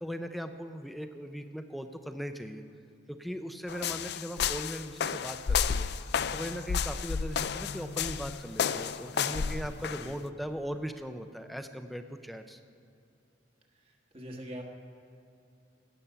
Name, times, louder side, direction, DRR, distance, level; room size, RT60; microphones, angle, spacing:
voice 1, 0.0-2.6 3.1-5.9 6.3-12.6, equal, ahead, 7 dB, 0.5 m, -39 dB
sound 1, 3.7-10.1, left 7 dB, 60° left, 0.4 m, -31 dB
voice 2, 9.3-9.6 10.0-10.1 14.1-14.6, equal, 30° right, 1 dB, 1.5 m, -43 dB
17.0 x 7.3 x 6.8 m, 2.7 s
head